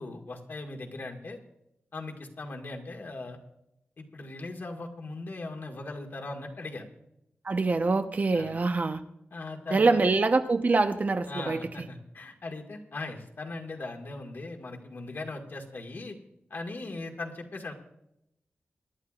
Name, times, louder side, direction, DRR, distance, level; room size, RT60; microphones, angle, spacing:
voice 1, 0.0-1.4 1.9-3.4 4.0-6.8 8.3-8.5 9.3-10.1 11.3-16.2 16.5-17.7, left 2 dB, 55° left, 3 dB, 1.8 m, -39 dB
voice 2, 7.4-9.0 9.7-11.6, right 3 dB, 45° right, 8 dB, 0.9 m, -24 dB
23.5 x 11.5 x 2.5 m, 0.81 s
wide cardioid pair, 100°, 4 cm